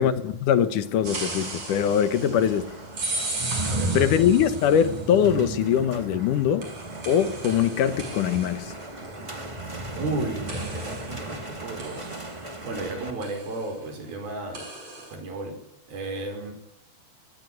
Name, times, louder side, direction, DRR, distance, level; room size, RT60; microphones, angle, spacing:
voice 1, 0.0-2.7 3.9-6.7 7.1-8.7, left 9 dB, 65° left, 2.3 m, -22 dB
sound 1, 0.8-13.1, right 2 dB, 10° right, 1.7 m, -35 dB
sound 2, 1.0-5.3 6.6-10.1 10.5-12.9 13.2-13.7 14.5-15.1, right 2 dB, 35° right, 6.6 m, -36 dB
voice 2, 3.6-4.1 4.6-4.8 9.9-14.7 15.1-15.6 15.9-16.5, right 2 dB, 65° right, 6.8 m, -34 dB
25.5 x 17.5 x 9.6 m
omnidirectional pair, 4.7 m